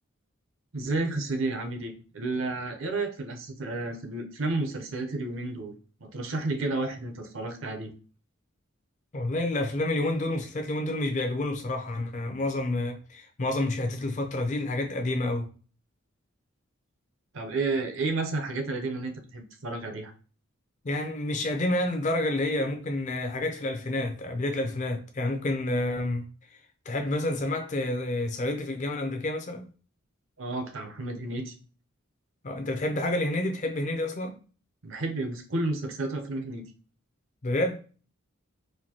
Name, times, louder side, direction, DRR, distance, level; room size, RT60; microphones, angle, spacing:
voice 1, 0.7-5.7 6.0-7.9 17.3-20.1 30.4-31.5 34.8-36.7, right 2 dB, 70° right, 0.7 m, -31 dB
voice 2, 9.1-15.5 20.8-26.2 26.9-29.7 32.4-34.3 37.4-37.8, left 1 dB, 35° left, 0.4 m, -29 dB
4.3 x 2.6 x 2.8 m
head